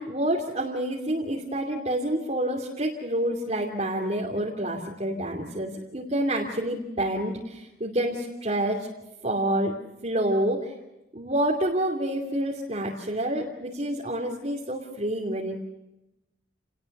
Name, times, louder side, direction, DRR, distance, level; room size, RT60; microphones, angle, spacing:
voice 1, 0.0-8.9 9.2-9.7 10.0-10.7 11.1-15.6, right 1 dB, 35° right, -3 dB, 2.9 m, -28 dB
30.0 x 19.5 x 6.7 m, 0.95 s
head